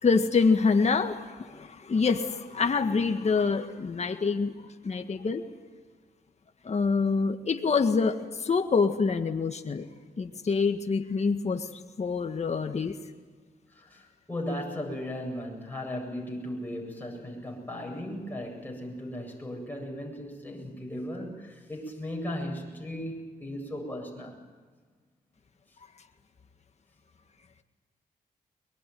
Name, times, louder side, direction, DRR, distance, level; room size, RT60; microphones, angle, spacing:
voice 1, 0.0-5.4 6.6-9.8 10.2-11.7 12.0-12.9, left 4 dB, 45° left, 6 dB, 1.8 m, -26 dB
voice 2, 13.7-24.4, left 1 dB, 10° left, -1 dB, 7.9 m, -37 dB
22.5 x 22.0 x 9.4 m, 1.5 s
cardioid pair, 65°, 16 cm